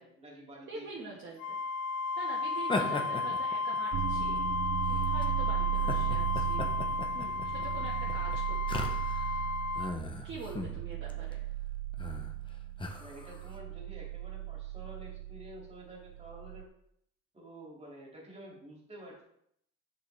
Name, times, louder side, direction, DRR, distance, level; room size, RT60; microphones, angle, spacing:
voice 1, 0.0-1.1 13.0-16.7 17.3-19.2, right 1 dB, 20° right, -2 dB, 2.6 m, -50 dB
voice 2, 0.7-1.6 2.1-4.4 4.9-6.7 7.1-9.0 10.2-11.5, right 3 dB, 35° right, -4 dB, 1.5 m, -45 dB
Wind instrument woodwind instrument, 1.4-10.0, left 4 dB, 75° left, 0.7 m, -33 dB
sound 1, 2.6-4.4 5.0-5.3 5.8-9.4 9.8-10.8 11.1-11.3 11.9-12.3 12.8-13.5, left 3 dB, 15° left, 0.9 m, -37 dB
sound 2, 3.9-16.6, right 14 dB, 50° right, 0.6 m, -36 dB
8.0 x 6.7 x 3.4 m, 0.72 s
cardioid pair, 135°, 33 cm